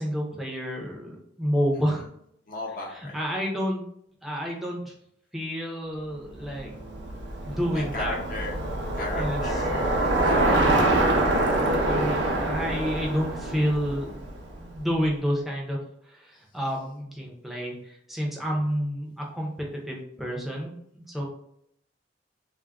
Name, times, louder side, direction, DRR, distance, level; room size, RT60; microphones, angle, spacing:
voice 1, 0.0-2.1 2.9-3.8 4.2-4.9 5.3-6.7 7.4-8.2 9.1-9.4 11.8-14.2 14.6-15.8 16.1-21.2, equal, ahead, -2 dB, 0.5 m, -29 dB
voice 2, 2.5-3.2 7.7-8.6 8.9-11.6 18.6-18.7, left 2 dB, 50° left, -1 dB, 0.7 m, -36 dB
Bicycle, 6.4-14.8, right 2 dB, 75° right, 0.5 m, -25 dB
2.3 x 2.1 x 3.4 m, 0.73 s
head